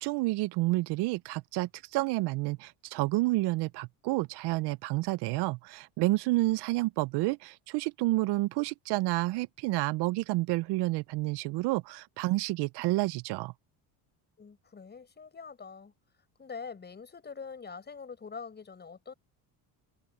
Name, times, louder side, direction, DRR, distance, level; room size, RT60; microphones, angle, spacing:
voice 1, 0.0-13.5, right 20 dB, 70° right, 0.6 m, -29 dB
voice 2, 14.4-15.9 16.4-19.1, left 5 dB, 25° left, 5.4 m, -44 dB
cardioid pair, 125°, 42 cm